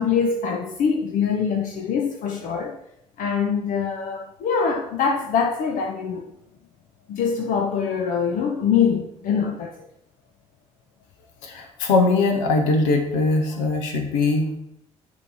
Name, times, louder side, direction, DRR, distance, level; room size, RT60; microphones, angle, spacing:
voice 1, 0.0-2.8 3.2-6.3 7.1-9.7, left 6 dB, 55° left, 0.7 m, -23 dB
voice 2, 11.5-14.6, left 3 dB, 75° left, 1.1 m, -21 dB
9.5 x 3.2 x 5.5 m
figure-of-eight pair, 45°, 16 cm